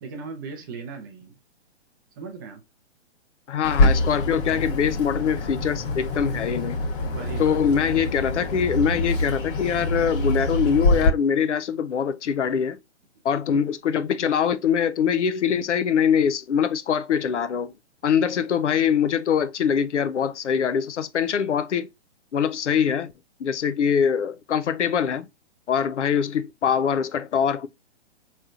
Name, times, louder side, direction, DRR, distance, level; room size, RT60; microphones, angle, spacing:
voice 1, 0.0-1.4 2.2-2.6 7.1-7.6 13.5-13.6, right 5 dB, 20° right, 0.4 m, -37 dB
voice 2, 3.5-6.8 7.4-12.8 13.2-17.7 18.0-21.9 22.3-23.1 23.4-25.3 25.7-27.7, left 7 dB, 85° left, 0.7 m, -23 dB
Bird, 3.6-11.1, left 2 dB, 50° left, 1.4 m, -25 dB
4.3 x 3.2 x 2.4 m
hypercardioid pair, 145°, 34 cm